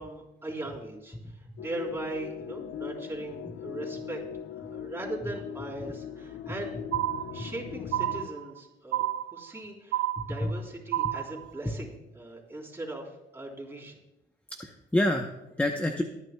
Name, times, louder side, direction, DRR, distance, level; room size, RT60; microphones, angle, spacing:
voice 1, 0.0-4.2 4.6-6.8 7.3-11.9 12.1-14.0, right 2 dB, 10° right, -2 dB, 3.6 m, -39 dB
sound 1, 1.6-8.3, left 8 dB, 65° left, 0.6 m, -40 dB
sound 2, 6.9-7.6 7.9-8.6 8.9-9.6 9.9-10.6 10.9-11.6, right 13 dB, 80° right, 0.5 m, -30 dB
voice 2, 14.6-16.0, left 1 dB, 5° left, 4 dB, 0.9 m, -28 dB
23.5 x 9.2 x 2.3 m, 0.95 s
cardioid pair, 90°, 20 cm